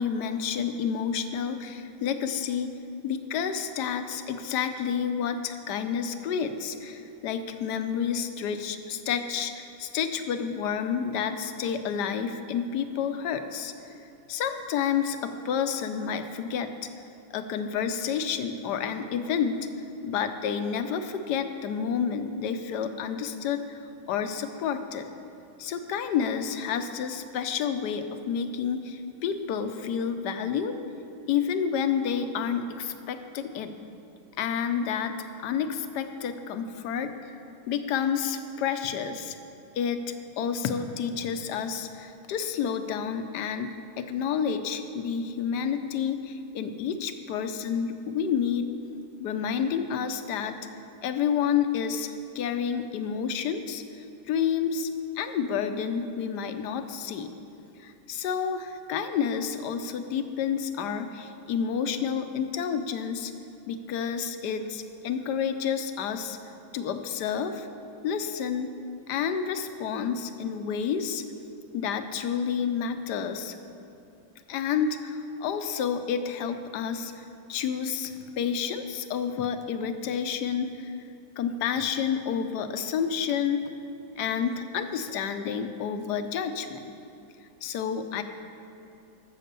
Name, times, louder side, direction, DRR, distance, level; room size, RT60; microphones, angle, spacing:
voice 1, 0.0-2.7 3.0-13.9 14.3-16.7 17.3-19.6 20.0-23.8 24.1-25.1 25.6-30.8 31.3-33.7 34.4-37.4 37.7-39.4 39.8-48.7 49.2-50.6 51.0-54.9 55.1-57.3 57.8-63.3 63.7-66.4 66.7-67.7 68.0-68.7 69.1-71.2 71.7-73.6 74.5-77.2 77.5-81.0 81.4-83.6 84.2-86.9 87.6-88.2, left 7 dB, 65° left, 8 dB, 1.1 m, -29 dB
13.0 x 7.3 x 6.7 m, 2.7 s
omnidirectional pair, 2.1 m